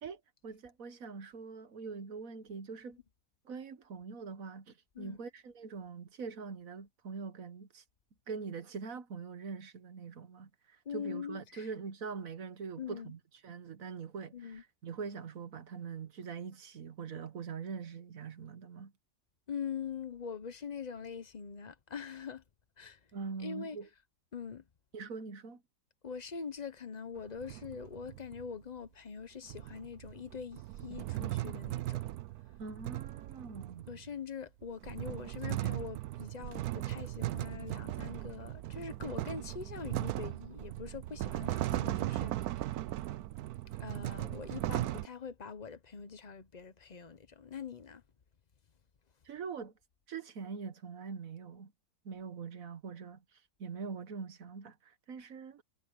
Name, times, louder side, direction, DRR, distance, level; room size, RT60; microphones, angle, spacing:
voice 1, 0.0-3.0 3.4-7.8 8.3-18.9 23.1-23.9 24.9-25.6 32.6-33.9 49.2-49.7 50.1-51.7 52.0-53.2 53.6-55.6, right 5 dB, 50° right, 1.4 m, -43 dB
voice 2, 10.8-11.7 12.8-13.1 14.3-14.6 19.5-22.4 22.8-23.0 23.4-23.8 24.3-24.6 26.0-32.0 33.9-42.8 43.8-48.0, left 6 dB, 80° left, 0.3 m, -43 dB
sound 1, 27.2-28.5 29.5-34.1 34.6-45.1, right 15 dB, 80° right, 0.8 m, -38 dB
omnidirectional pair, 2.2 m